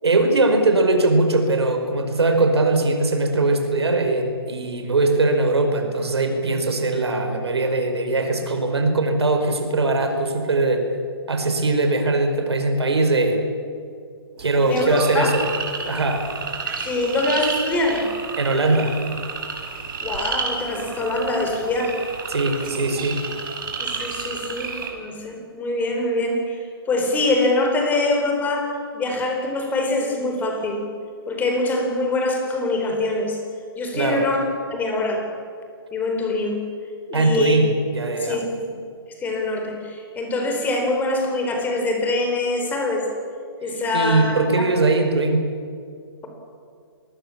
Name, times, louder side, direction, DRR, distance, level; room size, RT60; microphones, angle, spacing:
voice 1, 0.0-10.9 11.3-13.4 14.4-15.5 15.9-16.3 18.4-19.0 22.3-23.2 33.9-34.3 37.1-38.4 43.9-45.5, right 2 dB, 90° right, 5 dB, 4.9 m, -20 dB
sound 1, 14.4-24.9, right 5 dB, 55° right, 5.9 m, -31 dB
voice 2, 14.6-15.4 16.8-18.1 20.0-22.0 22.6-22.7 23.8-26.5 26.9-30.8 31.3-33.4 33.8-34.4 34.7-35.2 35.9-36.6 37.1-37.6 38.2-38.6 39.2-43.1 43.6-44.7, left 2 dB, 15° left, 3 dB, 4.3 m, -24 dB
26.5 x 21.0 x 7.3 m, 2.3 s
hypercardioid pair, 145°, 13 cm